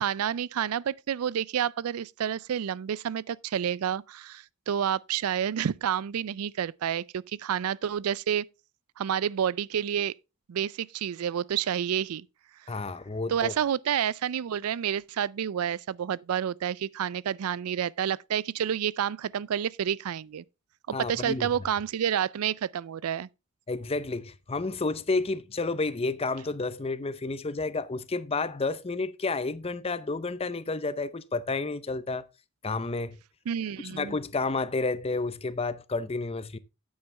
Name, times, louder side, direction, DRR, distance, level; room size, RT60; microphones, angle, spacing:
voice 1, 0.0-8.4 9.0-10.1 10.5-12.2 13.3-20.4 20.9-23.3 33.5-34.1, right 9 dB, 90° right, 0.4 m, -29 dB
voice 2, 12.7-13.5 20.9-21.5 23.7-32.2 32.6-33.2 33.9-36.6, left 3 dB, 25° left, 0.6 m, -30 dB
9.0 x 8.8 x 3.3 m
head